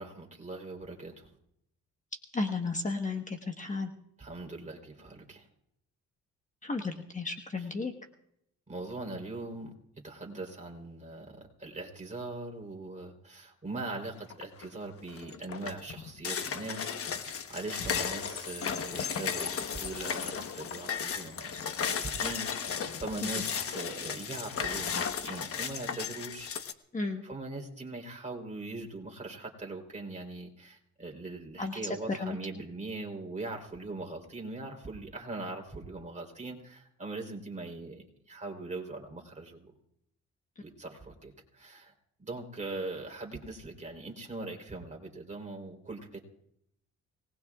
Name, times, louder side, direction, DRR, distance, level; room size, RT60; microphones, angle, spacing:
voice 1, 0.0-1.3 4.2-5.5 8.7-9.7 10.0-16.9 17.2-26.5 27.2-39.7 40.6-41.9 42.2-46.2, right 2 dB, 25° right, 2 dB, 3.7 m, -41 dB
voice 2, 2.3-3.9 6.6-7.9 26.9-27.2 31.6-32.4, left 3 dB, 25° left, 4 dB, 1.3 m, -33 dB
sound 1, 14.3-14.7 15.1-26.7, left 7 dB, 50° left, 1.2 m, -35 dB
25.5 x 19.5 x 2.4 m, 0.75 s
cardioid pair, 90°, 30 cm